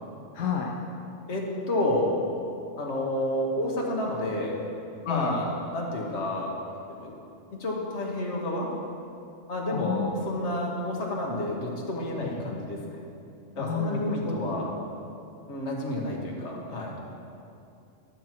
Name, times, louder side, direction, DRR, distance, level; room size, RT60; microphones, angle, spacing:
voice 1, 0.3-0.7 5.1-5.4 9.7-10.1 12.2-12.4 13.6-14.5, left 6 dB, 85° left, -1 dB, 1.1 m, -31 dB
voice 2, 1.3-2.2 2.8-4.7 5.0-7.2 7.5-8.7 9.5-13.0 13.6-14.7 15.5-17.0, left 1 dB, 65° left, -2 dB, 1.6 m, -30 dB
11.5 x 7.1 x 4.5 m, 2.7 s
omnidirectional pair, 1.3 m